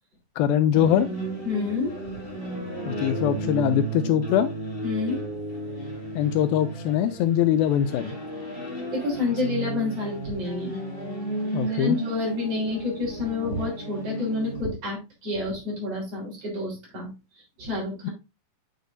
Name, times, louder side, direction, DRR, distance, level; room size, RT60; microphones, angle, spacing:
voice 1, 0.4-1.1 2.9-4.5 6.2-8.2 11.5-12.0, left 10 dB, 80° left, 11 dB, 2.3 m, -22 dB
sound 1, 0.7-14.6, right 2 dB, 20° left, 1.6 m, -33 dB
voice 2, 1.4-2.0 4.8-5.2 8.9-10.8 11.7-17.1 17.6-18.1, left 3 dB, 40° right, -2 dB, 4.6 m, -29 dB
8.4 x 6.4 x 2.5 m, 0.26 s
omnidirectional pair, 4.4 m